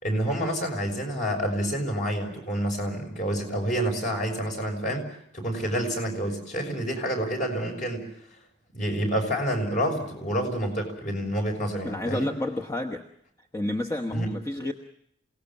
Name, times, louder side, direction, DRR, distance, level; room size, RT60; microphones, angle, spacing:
voice 1, 0.0-5.0 5.3-8.1 8.7-12.3 14.1-14.3, equal, 45° left, 3 dB, 6.1 m, -28 dB
voice 2, 11.8-13.0 13.5-14.7, left 1 dB, 15° left, 2 dB, 1.1 m, -30 dB
28.0 x 18.5 x 7.2 m, 0.72 s
head